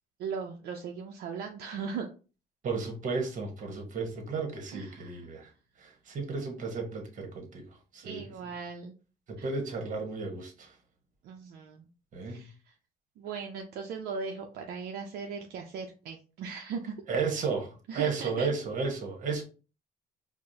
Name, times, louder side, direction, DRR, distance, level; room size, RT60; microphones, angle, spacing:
voice 1, 0.2-2.1 4.7-5.2 8.0-8.9 9.4-9.5 11.2-11.9 12.2-12.7 13.2-16.9 17.9-18.5, right 5 dB, 70° right, 0.5 m, -38 dB
voice 2, 2.6-5.5 5.8-8.3 9.3-10.8 12.1-12.5 17.1-19.4, right 4 dB, 50° right, 1.1 m, -33 dB
4.6 x 2.1 x 2.7 m
cardioid pair, 110°, 17 cm